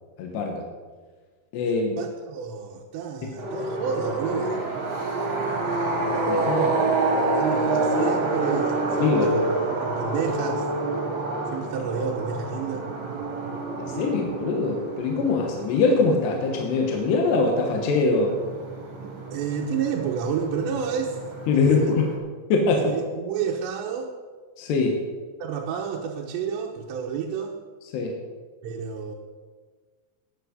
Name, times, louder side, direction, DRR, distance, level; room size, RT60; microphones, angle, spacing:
voice 1, 0.2-0.7 1.5-2.0 6.3-6.8 9.0-9.3 13.8-18.3 21.5-22.1 22.5-23.0 24.6-25.0 27.9-28.2, left 4 dB, 75° left, 2 dB, 3.4 m, -23 dB
voice 2, 1.6-4.6 7.4-9.5 9.8-10.7 11.5-12.9 19.0-21.2 21.5-21.9 22.8-24.1 25.4-27.6 28.6-29.2, right 6 dB, 80° right, -1 dB, 3.1 m, -30 dB
sound 1, 3.4-22.2, right 2 dB, 35° right, 2.4 m, -28 dB
15.0 x 9.6 x 5.3 m, 1.5 s
omnidirectional pair, 5.0 m